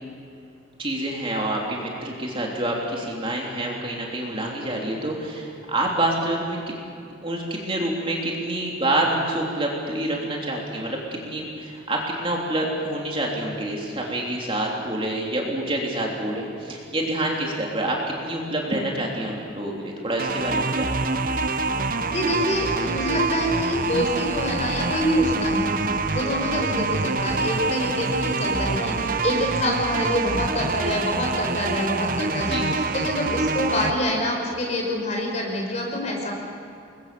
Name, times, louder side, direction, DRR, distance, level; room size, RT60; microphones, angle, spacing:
voice 1, 0.8-6.6 7.2-11.0 11.2-20.9 32.5-32.7, right 1 dB, 25° right, -1 dB, 3.4 m, -27 dB
sound 1, 20.2-33.9, right 3 dB, 45° right, 0.9 m, -26 dB
voice 2, 22.1-25.7 26.1-36.3, left 1 dB, 35° left, 0 dB, 5.4 m, -26 dB
28.0 x 22.0 x 7.0 m, 2.6 s
head